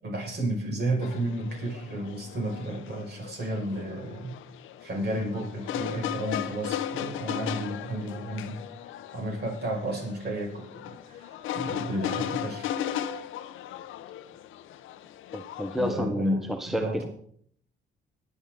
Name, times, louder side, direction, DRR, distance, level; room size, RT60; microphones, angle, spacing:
voice 1, 0.0-4.4 4.8-8.7 9.1-12.7 15.8-17.1, right 1 dB, 55° right, 0 dB, 6.0 m, -32 dB
sound 1, 1.0-15.9, left 10 dB, 85° left, 0.8 m, -36 dB
voice 2, 15.3-17.0, equal, ahead, 7 dB, 1.0 m, -30 dB
22.0 x 9.1 x 3.9 m, 0.62 s
cardioid pair, 90°, 20 cm